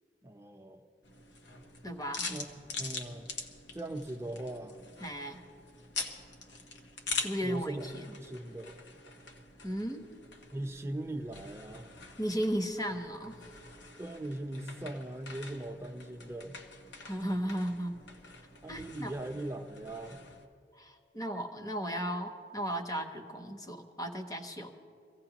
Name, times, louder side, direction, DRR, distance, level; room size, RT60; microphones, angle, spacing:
voice 1, 0.2-0.8 2.2-3.3 3.7-4.8 7.4-7.9 8.2-8.7 10.5-11.9 14.0-16.6 18.6-20.2, right 1 dB, 15° right, 4 dB, 0.8 m, -39 dB
sound 1, 1.0-20.5, left 3 dB, 85° left, 1.2 m, -44 dB
voice 2, 1.8-2.3 5.0-5.4 7.2-7.7 9.6-10.1 12.2-13.4 17.0-18.0 18.7-19.1 20.8-24.7, equal, 20° left, 5 dB, 1.0 m, -35 dB
24.0 x 16.0 x 3.0 m, 2.3 s
head